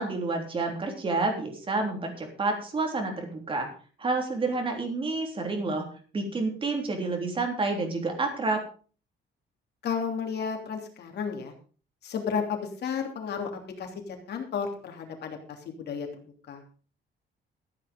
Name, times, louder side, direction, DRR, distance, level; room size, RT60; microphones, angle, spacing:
voice 1, 0.0-3.7 4.0-5.9 6.1-8.6, right 3 dB, 25° right, 3 dB, 3.4 m, -29 dB
voice 2, 9.8-11.5 12.0-13.5 13.8-16.6, left 6 dB, 60° left, 3 dB, 3.1 m, -33 dB
14.0 x 9.4 x 5.2 m, 0.40 s
cardioid pair, 165°, 20 cm